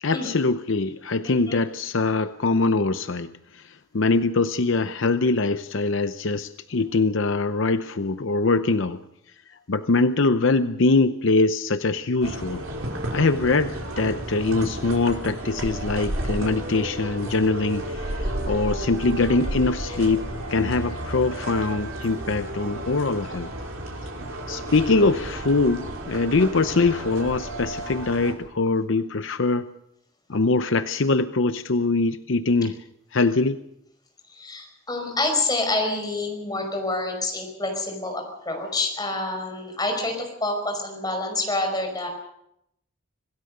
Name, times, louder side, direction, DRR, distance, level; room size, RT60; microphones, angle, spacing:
voice 1, 0.0-9.0 9.7-12.6 13.1-23.5 24.5-29.7 30.3-32.8 33.1-33.6, left 3 dB, 65° left, 11 dB, 0.7 m, -23 dB
voice 2, 1.2-1.6 34.3-42.1, left 2 dB, 20° left, 3 dB, 5.3 m, -27 dB
sound 1, 12.2-28.3, right 1 dB, 85° right, 5.0 m, -32 dB
26.5 x 17.0 x 6.7 m, 0.80 s
head